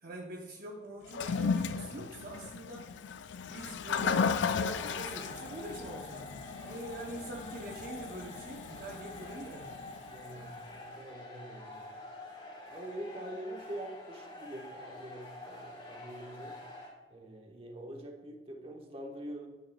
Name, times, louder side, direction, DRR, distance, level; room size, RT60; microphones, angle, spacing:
voice 1, 0.0-2.9 3.5-6.3 6.6-9.9, right 1 dB, 55° right, -1 dB, 0.9 m, -44 dB
Toilet flush, 1.1-10.3, left 5 dB, 80° left, 0.4 m, -35 dB
sound 1, 4.0-16.9, left 2 dB, 30° left, 2.2 m, -47 dB
voice 2, 10.1-11.9 12.7-16.6 17.1-19.5, right 1 dB, 35° right, 1 dB, 1.3 m, -44 dB
9.4 x 9.0 x 2.3 m, 1.3 s
head